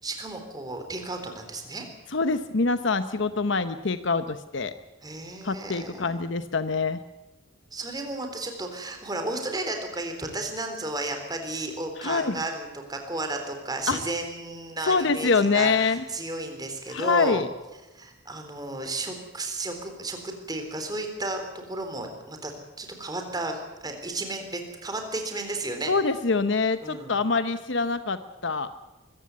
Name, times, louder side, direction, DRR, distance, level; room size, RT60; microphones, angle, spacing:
voice 1, 0.0-1.9 5.0-6.2 7.7-17.4 17.9-22.5 22.8-25.9 26.8-27.1, right 2 dB, 20° right, 5 dB, 3.7 m, -33 dB
voice 2, 2.1-4.7 5.4-7.0 12.0-12.4 13.9-14.0 14.8-16.0 16.9-17.5 25.9-28.7, left 4 dB, 65° left, 11 dB, 0.9 m, -25 dB
23.5 x 15.5 x 9.6 m, 1.1 s
head